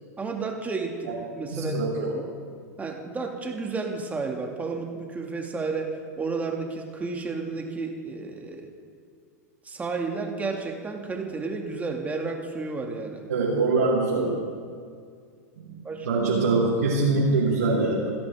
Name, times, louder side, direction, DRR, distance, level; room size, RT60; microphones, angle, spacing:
voice 1, 0.2-1.8 2.1-2.2 2.8-5.9 6.2-8.7 9.6-13.2 15.8-16.1, right 4 dB, 15° right, 2 dB, 2.3 m, -32 dB
voice 2, 1.5-2.3 13.3-14.4 15.5-18.1, right 3 dB, 90° right, -8 dB, 3.8 m, -24 dB
27.0 x 10.5 x 3.7 m, 2.1 s
hypercardioid pair, 100°, 9 cm